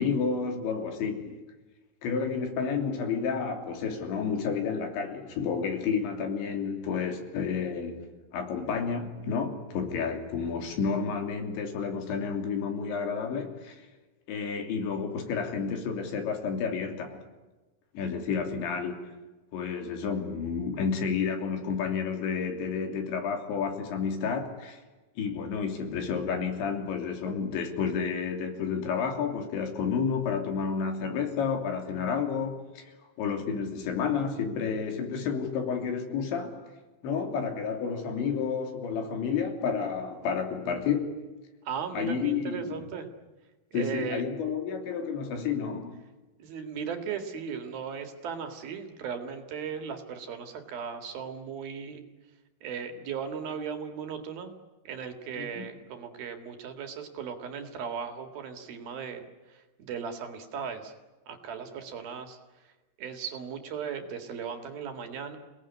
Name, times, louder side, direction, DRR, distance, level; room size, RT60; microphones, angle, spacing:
voice 1, 0.0-1.4 2.0-8.0 8.3-13.8 14.3-17.2 18.0-19.0 19.5-24.8 25.2-32.9 33.2-36.7 37.0-41.1 41.9-42.8 43.7-46.0 55.4-55.7, left 6 dB, 80° left, 5.4 m, -30 dB
voice 2, 41.7-43.1 43.7-44.2 46.4-52.0 52.6-54.5 54.9-60.9 61.3-62.4 63.0-65.4, right 7 dB, 60° right, 3.6 m, -37 dB
29.0 x 19.0 x 9.8 m
omnidirectional pair, 5.2 m